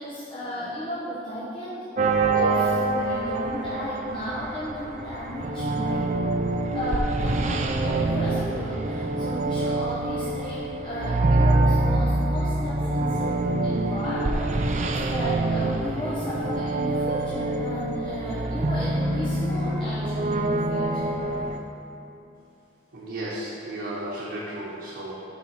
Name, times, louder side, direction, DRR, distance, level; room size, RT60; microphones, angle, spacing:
voice 1, 0.0-1.7 2.3-6.1 6.7-21.4, equal, 30° left, -10 dB, 0.9 m, -34 dB
sound 1, 2.0-21.6, right 2 dB, 40° right, 0.4 m, -25 dB
voice 2, 22.9-25.1, right 1 dB, 90° right, -6 dB, 0.9 m, -34 dB
7.2 x 3.7 x 5.6 m, 2.9 s
head